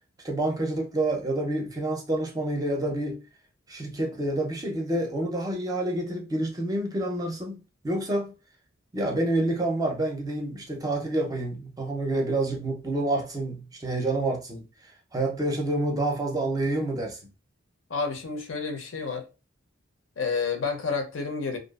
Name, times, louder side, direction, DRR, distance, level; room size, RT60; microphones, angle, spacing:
voice 1, 0.2-3.2 3.7-8.3 8.9-14.6 15.1-17.2, right 1 dB, 20° right, 0.5 m, -28 dB
voice 2, 17.9-19.2 20.2-21.6, left 4 dB, 70° left, 0.6 m, -29 dB
2.5 x 2.3 x 2.3 m
head